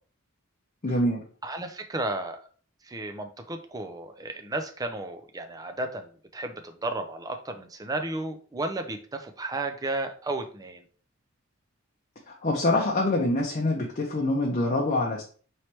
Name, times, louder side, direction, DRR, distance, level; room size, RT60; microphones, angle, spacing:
voice 1, 0.8-1.2 12.3-15.2, left 2 dB, 35° left, -2 dB, 0.6 m, -25 dB
voice 2, 1.4-2.4 2.8-10.8, right 2 dB, 20° right, 6 dB, 0.5 m, -33 dB
4.5 x 3.1 x 2.9 m, 0.42 s
head